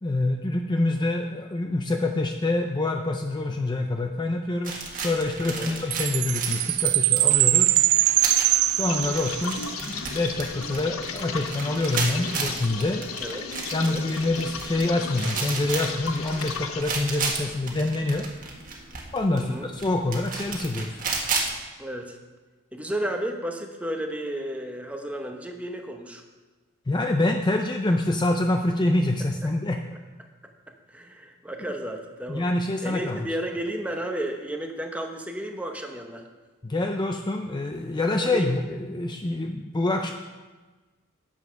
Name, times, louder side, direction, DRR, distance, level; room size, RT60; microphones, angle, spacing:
voice 1, 0.0-7.8 8.7-13.1 13.7-18.3 19.1-21.0 26.9-29.8 32.3-33.2 36.6-40.1, left 2 dB, 20° left, 4 dB, 0.4 m, -26 dB
sound 1, 4.6-21.5, right 4 dB, 40° right, 1.5 m, -34 dB
voice 2, 5.4-5.8 13.2-13.5 13.8-14.0 19.3-19.7 21.8-22.2 22.7-26.2 30.9-32.5 32.8-36.2 38.2-38.6, right 1 dB, 5° right, 3 dB, 1.0 m, -33 dB
Chime, 5.9-9.6, right 16 dB, 85° right, 0.3 m, -22 dB
sound 2, 8.8-16.8, left 6 dB, 75° left, 0.7 m, -35 dB
9.4 x 7.3 x 5.8 m, 1.3 s
head